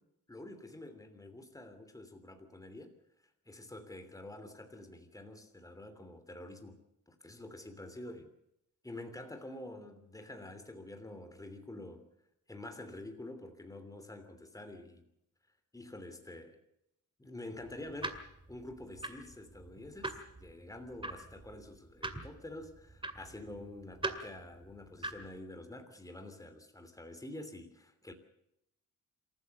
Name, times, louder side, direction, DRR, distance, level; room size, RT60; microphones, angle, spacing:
voice 1, 0.3-2.9 3.5-6.8 7.1-8.3 8.8-12.1 12.5-15.1 15.7-16.6 17.2-18.2 18.5-28.1, left 1 dB, 10° left, 3.0 m, -47 dB
sound 1, 17.6-25.4, right 2 dB, 15° right, 2.2 m, -43 dB
27.5 x 14.5 x 6.9 m
wide cardioid pair, 130°, 32 cm